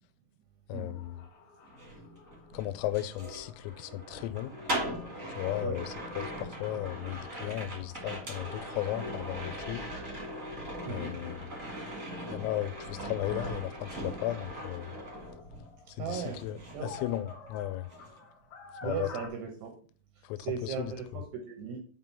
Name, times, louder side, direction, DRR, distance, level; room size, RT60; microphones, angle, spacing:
voice 1, 0.7-1.3 2.5-4.8 5.3-9.9 10.9-11.6 12.3-14.9 15.9-17.9 18.8-19.1 20.2-20.9, left 14 dB, 90° left, 3.3 m, -36 dB
sound 1, 0.8-13.5 14.0-19.3, left 4 dB, 60° left, 2.0 m, -52 dB
sound 2, 1.6-15.8 16.1-17.6 17.8-18.2, right 1 dB, 45° right, 1.0 m, -40 dB
voice 2, 10.8-11.1 16.0-16.9 18.8-19.7 20.4-21.8, right 6 dB, 75° right, 2.5 m, -37 dB
7.9 x 3.7 x 5.6 m
omnidirectional pair, 5.9 m